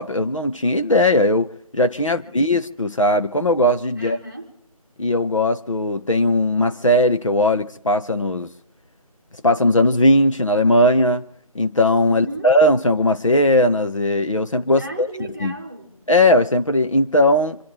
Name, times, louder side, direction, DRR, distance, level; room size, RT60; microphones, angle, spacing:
voice 1, 0.0-4.2 5.0-8.5 9.4-11.3 11.5-15.1 15.4-15.5 16.1-17.6, left 1 dB, 60° left, 1.1 m, -18 dB
voice 2, 2.0-2.5 3.9-4.5 12.1-12.5 14.7-16.0, right 1 dB, 10° left, 3.0 m, -35 dB
27.5 x 12.0 x 3.6 m
figure-of-eight pair, 170°, 19 cm